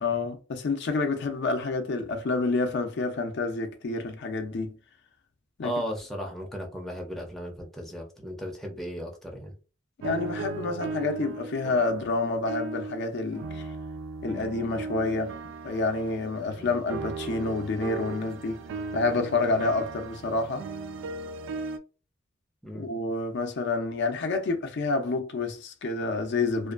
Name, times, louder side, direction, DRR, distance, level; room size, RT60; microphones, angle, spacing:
voice 1, 0.0-4.8 5.6-5.7 10.0-13.7 14.2-15.4 15.6-18.6 18.9-20.7 22.7-26.7, left 3 dB, 55° left, 0.4 m, -28 dB
voice 2, 5.6-9.5 16.6-16.8 22.6-22.9, equal, ahead, 0.5 m, -36 dB
sound 1, 10.0-13.1 13.3-21.8, right 4 dB, 70° right, 0.3 m, -37 dB
2.5 x 2.2 x 2.4 m
head